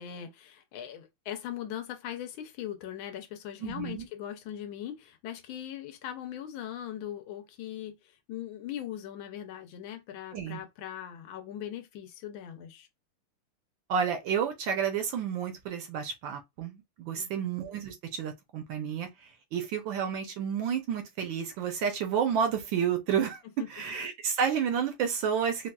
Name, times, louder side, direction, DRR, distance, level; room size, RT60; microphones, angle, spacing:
voice 1, 0.0-12.9 17.2-17.5 23.6-23.7, left 10 dB, 75° left, 1.3 m, -40 dB
voice 2, 3.6-4.1 10.3-10.6 13.9-19.1 19.5-23.4 23.7-25.7, right 7 dB, 70° right, 1.2 m, -30 dB
4.1 x 2.3 x 2.2 m
omnidirectional pair, 2.3 m